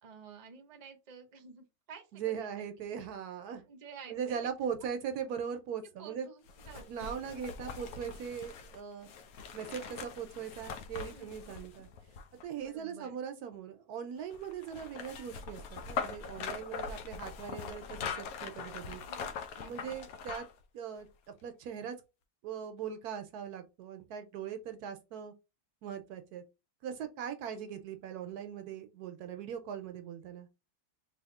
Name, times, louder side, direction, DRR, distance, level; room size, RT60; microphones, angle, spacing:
voice 1, 0.0-2.7 3.7-4.5 6.0-7.2 11.1-11.4 12.6-13.2 19.1-19.3 19.6-19.7, right 5 dB, 40° right, 0.7 m, -51 dB
voice 2, 2.1-3.6 4.1-6.3 6.9-9.1 9.5-11.9 12.4-19.0 19.6-20.5 20.7-21.1 21.4-22.0 22.4-25.3 25.8-26.4 26.8-30.5, right 8 dB, 75° right, 1.1 m, -40 dB
sound 1, 6.5-12.6 14.3-20.6 21.0-21.1, left 6 dB, 70° left, 1.0 m, -42 dB
3.4 x 2.6 x 3.6 m
omnidirectional pair, 1.7 m